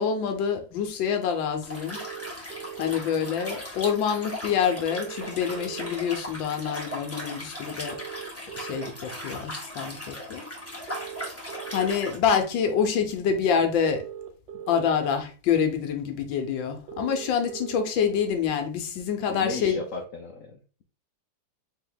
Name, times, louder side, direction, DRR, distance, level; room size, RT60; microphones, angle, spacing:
voice 1, 0.0-2.0 2.4-8.0 8.6-10.5 10.8-11.0 11.7-14.0 14.7-19.8, left 7 dB, 80° left, 1.5 m, -26 dB
Liquid, 1.6-12.2, equal, 10° left, 0.8 m, -38 dB
sound 1, 1.9-2.9 4.9-5.9 7.9-8.9 10.9-11.9 13.9-14.9 16.9-17.9, right 10 dB, 80° right, 1.5 m, -40 dB
voice 2, 19.3-20.8, left 3 dB, 65° left, 0.8 m, -36 dB
4.3 x 2.8 x 3.8 m
omnidirectional pair, 2.0 m